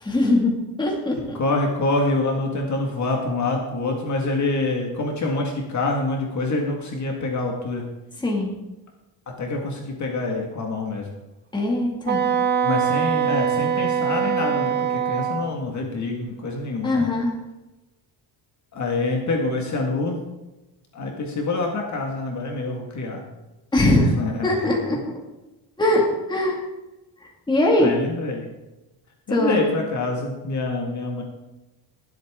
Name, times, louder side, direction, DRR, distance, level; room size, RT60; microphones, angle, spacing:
voice 1, 0.0-1.4 8.2-8.5 11.5-12.2 16.8-17.3 23.7-24.1 24.4-25.2 25.8-26.6 27.2-27.9 29.3-29.6, left 1 dB, 10° left, -1 dB, 2.1 m, -21 dB
voice 2, 1.1-7.8 9.3-11.1 12.6-17.0 18.7-20.2 20.9-23.2 24.0-24.8 27.8-28.5 29.3-31.2, left 2 dB, 40° left, 1 dB, 1.9 m, -26 dB
Wind instrument woodwind instrument, 12.1-15.5, right 7 dB, 25° right, 0.8 m, -23 dB
21.0 x 8.1 x 3.7 m, 1.0 s
cardioid pair, 175°, 45 cm